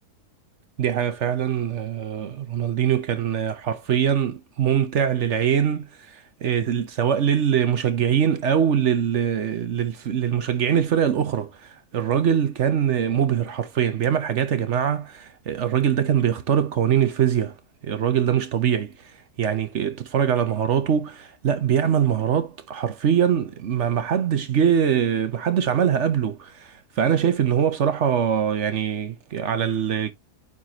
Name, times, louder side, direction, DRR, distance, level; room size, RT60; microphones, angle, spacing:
voice 1, 0.8-17.5 17.8-18.9 19.4-30.1, right 8 dB, 55° right, 1.1 m, -23 dB
9.2 x 4.2 x 2.9 m
omnidirectional pair, 1.6 m